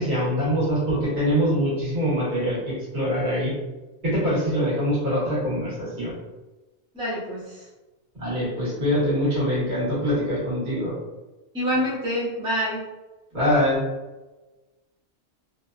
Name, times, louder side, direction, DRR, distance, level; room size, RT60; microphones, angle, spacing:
voice 1, 0.0-3.5 4.0-6.1 8.1-10.9 13.3-13.8, equal, 45° right, -8 dB, 1.3 m, -24 dB
voice 2, 6.9-7.6 11.5-12.9, equal, 5° right, -7 dB, 0.4 m, -26 dB
2.7 x 2.2 x 2.3 m, 1.1 s
omnidirectional pair, 1.2 m